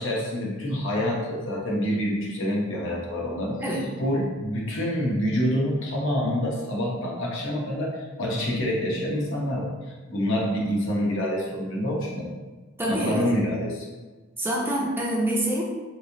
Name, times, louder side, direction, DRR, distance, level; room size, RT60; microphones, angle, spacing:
voice 1, 0.0-3.6 4.0-12.3 12.9-13.9, equal, 65° left, -3 dB, 0.8 m, -27 dB
voice 2, 12.8-13.2 14.4-15.6, right 1 dB, 10° right, -5 dB, 0.5 m, -26 dB
3.5 x 3.1 x 2.6 m, 1.3 s
head